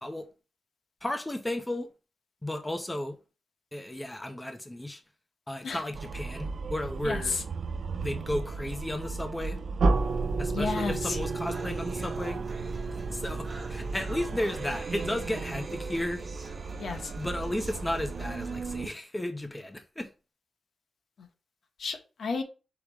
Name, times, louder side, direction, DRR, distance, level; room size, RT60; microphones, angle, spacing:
voice 1, 1.0-1.9 2.4-3.2 3.7-5.0 5.5-7.4 8.0-9.6 10.4-12.4 13.1-16.2 17.2-20.1, left 1 dB, 10° left, 0.5 m, -34 dB
sound 1, 5.9-18.9, right 4 dB, 60° right, 0.3 m, -37 dB
voice 2, 7.0-7.4 10.5-11.2 16.8-17.1 21.8-22.4, left 4 dB, 70° left, 0.9 m, -31 dB
sound 2, 9.8-14.6, right 3 dB, 90° right, 0.8 m, -31 dB
sound 3, 10.7-18.7, right 2 dB, 35° right, 0.9 m, -46 dB
4.9 x 2.0 x 4.6 m
wide cardioid pair, 145°, 0 cm